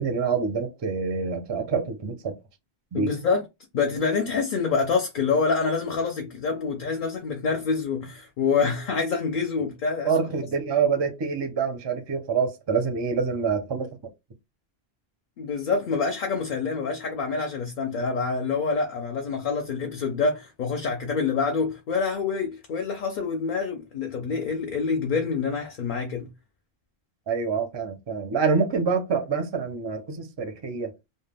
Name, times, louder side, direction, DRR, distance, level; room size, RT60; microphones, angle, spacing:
voice 1, 0.0-2.3 2.9-3.1 10.0-13.9 27.3-30.9, right 5 dB, 40° right, 0.4 m, -26 dB
voice 2, 2.9-3.4 3.7-10.1 15.4-26.3, left 5 dB, 60° left, 0.7 m, -26 dB
2.2 x 2.1 x 3.3 m
omnidirectional pair, 1.1 m